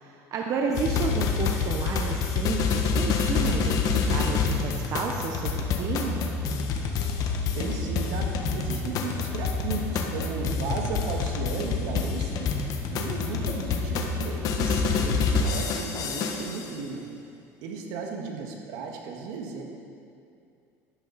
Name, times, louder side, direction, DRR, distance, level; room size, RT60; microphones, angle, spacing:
voice 1, 0.0-6.2 18.2-18.5, right 5 dB, 50° right, 1 dB, 1.0 m, -32 dB
sound 1, 0.7-16.7, left 5 dB, 55° left, 1.4 m, -27 dB
voice 2, 7.3-12.5 12.9-17.0 17.6-19.6, right 4 dB, 75° right, 1 dB, 1.9 m, -35 dB
12.5 x 12.5 x 4.2 m, 2.5 s
supercardioid pair, 105°, 7 cm